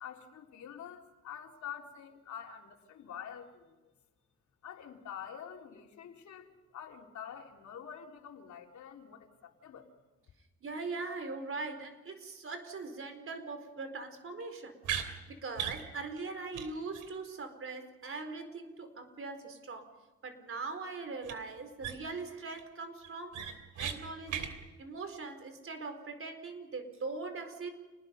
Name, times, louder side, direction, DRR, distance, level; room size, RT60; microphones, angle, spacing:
voice 1, 0.0-3.7 4.6-9.9, left 8 dB, 70° left, 1 dB, 3.8 m, -47 dB
voice 2, 10.6-19.9 20.2-23.4 23.8-27.7, right 3 dB, 45° right, 8 dB, 4.4 m, -41 dB
sound 1, 14.8-15.1 15.6-15.8 16.2-16.3 16.5-16.7 16.9-17.1 21.2-21.3 21.8-22.2 22.6-22.7 23.0-24.0 24.3-24.5, right 9 dB, 80° right, 3.1 m, -36 dB
29.5 x 20.5 x 5.4 m, 1.2 s
cardioid pair, 90°, 30 cm